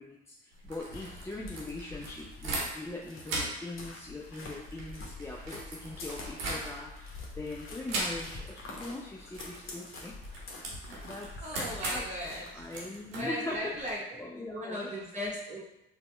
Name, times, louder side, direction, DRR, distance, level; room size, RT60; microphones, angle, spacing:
voice 1, 0.0-10.2 10.9-12.1 12.5-13.9 14.2-14.9, left 2 dB, 10° left, -2 dB, 0.4 m, -41 dB
sound 1, 0.5-3.0 3.2-7.0 7.9-8.6 8.8-9.0 9.3-13.9, right 2 dB, 90° right, 0.8 m, -39 dB
sound 2, 0.8-12.7, left 2 dB, 45° left, 0.9 m, -46 dB
voice 2, 11.4-12.6 13.2-14.0 14.3-15.6, equal, 25° right, -6 dB, 1.0 m, -37 dB
4.0 x 2.2 x 3.2 m, 0.85 s
hypercardioid pair, 50°, 29 cm